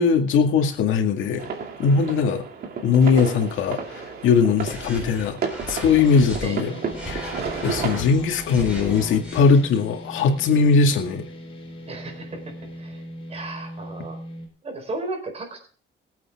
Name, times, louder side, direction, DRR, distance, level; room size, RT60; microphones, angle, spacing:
voice 1, 0.0-1.5 1.8-2.4 2.8-5.4 5.7-6.7 7.1-7.3 7.6-11.2, left 5 dB, 85° left, 4 dB, 2.0 m, -20 dB
sound 1, 1.4-8.0, right 6 dB, 50° right, 2.7 m, -32 dB
sound 2, 4.5-6.5 6.9-9.6, equal, 5° right, 6.5 m, -36 dB
sound 3, 5.7-14.5, equal, 30° left, 4.5 m, -39 dB
voice 2, 11.9-13.0 13.3-14.2 14.6-15.7, right 2 dB, 30° right, 5 dB, 4.4 m, -34 dB
23.0 x 8.7 x 3.7 m, 0.43 s
cardioid pair, 165°, 20 cm